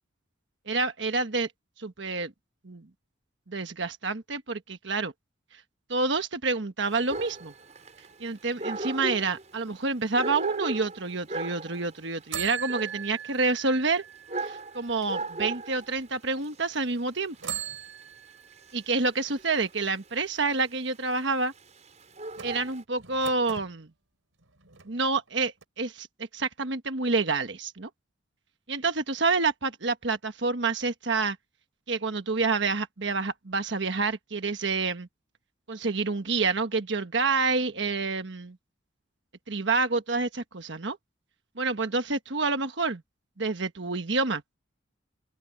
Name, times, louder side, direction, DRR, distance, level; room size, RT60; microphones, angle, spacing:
voice 1, 0.7-1.5 1.8-2.3 2.6-2.8 3.5-5.1 5.9-7.5 8.2-14.0 14.4-17.3 18.7-21.5 22.4-23.9 24.9-26.1 26.3-27.9 28.7-31.4 31.9-35.1 35.7-38.6 39.5-41.0 41.6-43.0 43.4-44.4, right 3 dB, 65° right, 1.3 m, -28 dB
Dog, 6.8-22.8, right 2 dB, 35° right, 6.2 m, -39 dB
sound 1, 6.9-8.8 12.3-15.4 16.0-16.1 17.3-19.1 22.3-23.7 24.4-25.3 25.6-25.7, right 9 dB, 90° right, 4.5 m, -41 dB
open air
head